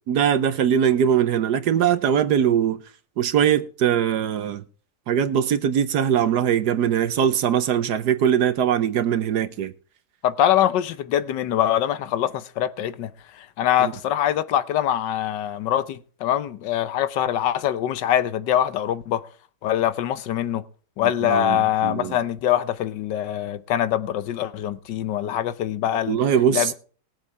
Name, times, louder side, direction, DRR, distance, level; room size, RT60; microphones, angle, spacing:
voice 1, 0.1-2.8 3.2-4.6 5.1-9.7 13.8-13.9 21.2-21.6 21.8-22.2 26.1-26.7, right 9 dB, 70° right, 1.3 m, -21 dB
voice 2, 10.2-13.1 13.4-19.2 19.6-20.6 21.0-26.2 26.5-26.7, left 11 dB, 85° left, 1.5 m, -23 dB
21.0 x 7.7 x 3.3 m
omnidirectional pair, 1.9 m